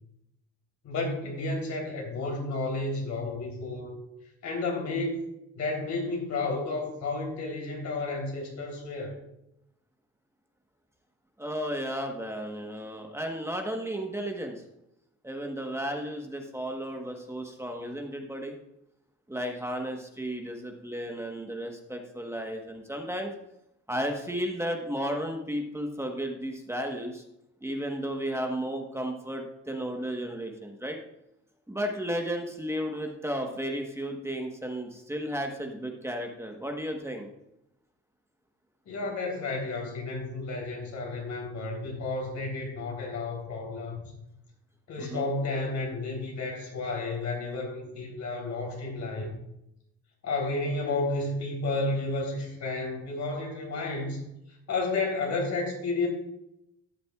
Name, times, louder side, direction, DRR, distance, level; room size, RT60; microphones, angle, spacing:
voice 1, 0.8-3.9 4.4-5.3 5.5-9.1 38.8-44.1 44.9-49.3 50.2-54.2 54.7-56.1, left 3 dB, 70° left, 0 dB, 3.4 m, -32 dB
voice 2, 11.4-14.6 15.2-18.6 19.3-23.3 23.9-27.2 27.6-31.0 31.7-37.3 45.0-45.3, equal, 10° right, 2 dB, 1.2 m, -33 dB
13.0 x 8.8 x 2.4 m, 0.85 s
cardioid pair, 90°, 30 cm